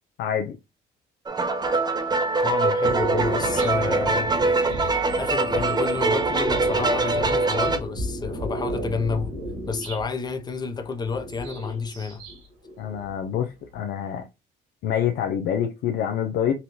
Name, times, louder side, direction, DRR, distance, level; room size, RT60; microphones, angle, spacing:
voice 1, 0.2-0.5 12.8-14.3 14.8-16.5, left 9 dB, 70° left, 0.6 m, -26 dB
sound 1, 1.3-7.8, right 3 dB, 25° right, 0.6 m, -23 dB
voice 2, 2.4-4.3 5.2-9.3 9.7-12.2, left 5 dB, 25° left, 0.7 m, -30 dB
sound 2, 2.8-10.1 11.0-12.4 12.6-13.6, right 1 dB, 90° right, 1.9 m, -32 dB
4.0 x 2.7 x 3.0 m
supercardioid pair, 85°, 18 cm